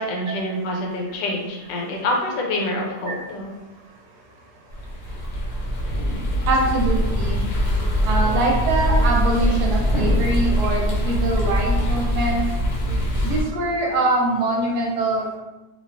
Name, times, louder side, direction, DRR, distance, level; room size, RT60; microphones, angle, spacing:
voice 1, 0.0-3.5, left 1 dB, 85° left, 0 dB, 1.2 m, -26 dB
sound 1, 4.7-13.4, equal, 65° left, 0.8 m, -22 dB
voice 2, 6.5-7.4 8.0-12.4 13.2-15.4, right 2 dB, 75° right, 0 dB, 1.0 m, -23 dB
2.8 x 2.3 x 2.3 m, 1.0 s
omnidirectional pair, 1.8 m